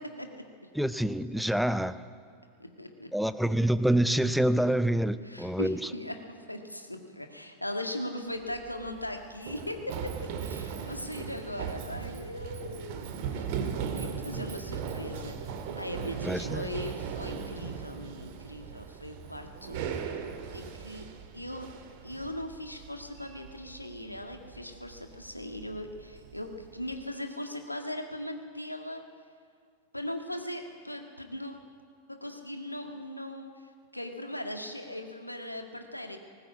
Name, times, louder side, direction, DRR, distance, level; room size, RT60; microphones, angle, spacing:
voice 1, 0.7-2.0 3.1-5.8 16.3-16.6, right 1 dB, ahead, 14 dB, 0.7 m, -26 dB
voice 2, 2.6-3.1 5.2-13.6 13.9-19.9 20.5-21.1 21.3-21.7 22.0-29.0 29.9-31.6 32.1-33.5 33.9-36.2, left 1 dB, 85° left, 5 dB, 1.8 m, -39 dB
Run, 8.4-27.0, right 7 dB, 50° right, 1.9 m, -38 dB
19.0 x 18.0 x 8.5 m, 2.1 s
figure-of-eight pair, 90°, 0 cm